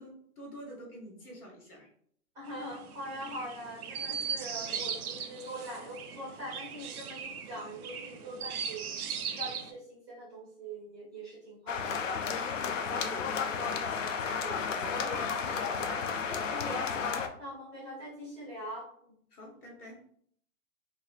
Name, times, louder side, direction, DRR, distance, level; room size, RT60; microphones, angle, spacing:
voice 1, 0.0-1.9 12.9-15.0 19.3-20.0, equal, 80° left, -1 dB, 1.4 m, -47 dB
voice 2, 2.3-12.5 14.8-19.2, equal, 5° right, -8 dB, 0.5 m, -43 dB
Chirp tweet, 2.5-9.7, right 7 dB, 75° right, 0.6 m, -39 dB
sound 1, 11.7-17.3, left 6 dB, 60° left, 0.5 m, -32 dB
3.5 x 2.0 x 2.5 m, 0.63 s
figure-of-eight pair, 130°, 45 cm